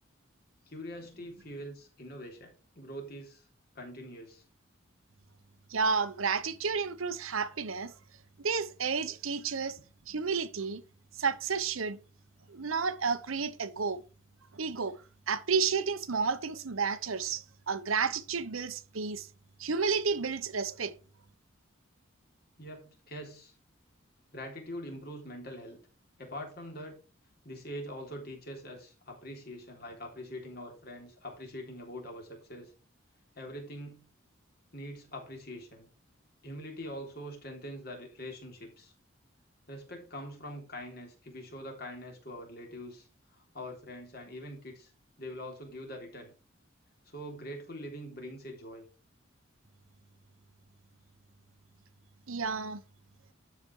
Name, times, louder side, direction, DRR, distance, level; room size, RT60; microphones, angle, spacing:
voice 1, 0.6-3.5 3.7-4.4 22.6-23.6 24.3-25.8 26.2-27.0 27.4-32.7 33.3-34.1 34.7-35.9 36.4-38.9 39.7-44.9 45.2-46.3 47.0-48.9, equal, 50° left, 3.3 m, -43 dB
voice 2, 5.7-7.9 8.4-9.8 10.1-10.8 11.2-12.0 12.5-14.0 14.5-15.0 15.3-19.3 19.6-20.9 52.3-52.8, right 5 dB, 85° right, 0.9 m, -31 dB
12.0 x 5.2 x 4.7 m
head